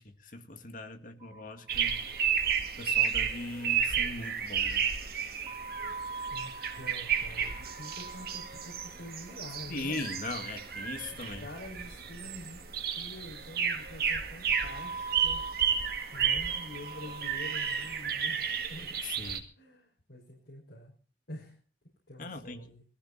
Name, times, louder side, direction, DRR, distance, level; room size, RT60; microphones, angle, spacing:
voice 1, 0.0-2.0 2.8-4.9 9.7-11.5 19.0-19.5 22.2-22.7, left 2 dB, 50° left, 1.8 m, -40 dB
sound 1, 1.2-2.2 2.5-2.6 2.8-2.9 5.5-11.6 14.5-18.1, right 4 dB, 25° right, 0.9 m, -44 dB
sound 2, 1.7-19.4, right 7 dB, 55° right, 2.2 m, -32 dB
voice 2, 6.3-9.9 11.2-12.7 12.9-15.5 16.1-19.0 19.6-20.9 21.3-21.6 22.1-22.8, left 1 dB, 70° left, 5.8 m, -47 dB
19.5 x 15.0 x 4.2 m
head